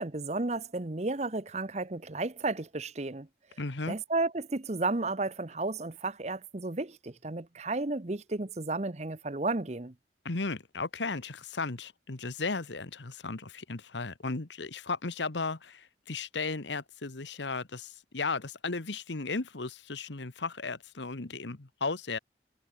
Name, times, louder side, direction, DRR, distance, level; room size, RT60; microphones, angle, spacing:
voice 1, 0.0-3.3 3.9-9.9, right 2 dB, 40° right, 0.9 m, -33 dB
voice 2, 3.6-4.0 10.2-22.2, left 3 dB, 85° left, 1.4 m, -35 dB
head